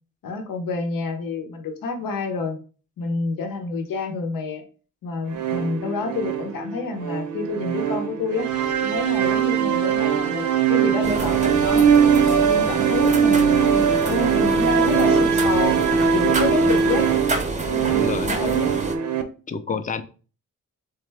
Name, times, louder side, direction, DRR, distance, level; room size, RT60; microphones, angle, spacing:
voice 1, 0.2-2.6 3.0-4.6 5.0-8.5 8.8-11.9 12.2-15.8 16.1-17.1 17.6-18.7 19.7-19.8, left 4 dB, 85° left, 4 dB, 0.8 m, -28 dB
sound 1, 5.3-19.2, right 7 dB, 60° right, 0.7 m, -21 dB
sound 2, 11.0-19.0, right 3 dB, 20° right, 0.6 m, -28 dB
voice 2, 17.9-18.3 19.5-20.0, left 5 dB, 25° left, 10 dB, 0.5 m, -29 dB
3.6 x 3.3 x 3.4 m, 0.37 s
cardioid pair, 75°, 33 cm